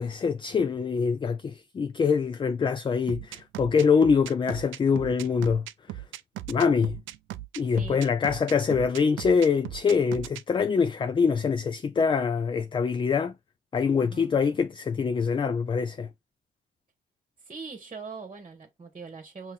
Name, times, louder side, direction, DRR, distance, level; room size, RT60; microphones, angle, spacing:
voice 1, 0.0-5.7 6.5-7.0 7.6-13.3 13.7-16.1, left 5 dB, 25° left, 0.4 m, -24 dB
sound 1, 3.1-10.4, right 15 dB, 75° right, 0.4 m, -38 dB
voice 2, 14.0-14.3 17.4-19.5, right 4 dB, 30° right, 1.2 m, -42 dB
5.6 x 2.8 x 2.3 m
cardioid pair, 90°, 20 cm